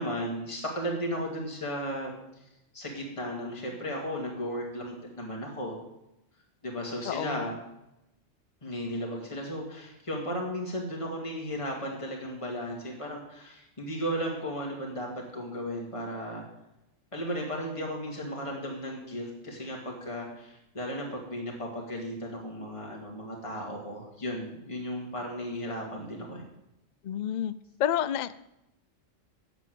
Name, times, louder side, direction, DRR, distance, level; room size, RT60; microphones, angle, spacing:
voice 1, 0.0-2.1 2.7-5.8 6.6-7.5 8.6-16.5 17.1-26.4, equal, 25° left, -1 dB, 2.4 m, -35 dB
voice 2, 7.0-7.5 27.0-27.5 27.8-28.4, left 10 dB, 70° left, 16 dB, 0.4 m, -29 dB
9.3 x 8.0 x 7.8 m, 0.89 s
omnidirectional pair, 1.3 m